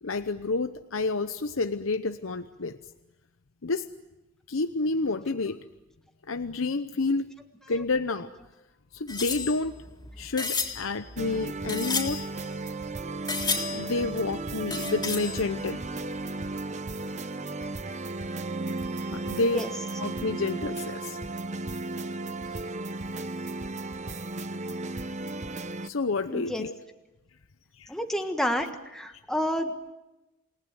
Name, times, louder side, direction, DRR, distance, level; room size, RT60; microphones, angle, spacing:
voice 1, 0.0-2.8 3.6-3.9 4.5-5.6 6.3-7.3 7.7-8.3 8.9-9.8 10.2-12.2 13.7-15.8 19.0-19.6 20.0-21.2 22.5-22.6 25.8-26.7 27.8-27.9, left 3 dB, 85° left, 10 dB, 0.9 m, -29 dB
sound 1, 9.1-12.9 13.3-14.2 14.7-15.9 16.2-16.3 16.5-16.6, left 5 dB, 20° left, 3.7 m, -33 dB
sound 2, 11.2-25.9, right 2 dB, 35° right, 0.9 m, -34 dB
voice 2, 26.3-26.7 27.9-29.9, equal, 5° left, 4 dB, 1.5 m, -30 dB
28.5 x 19.0 x 9.5 m, 1.0 s
head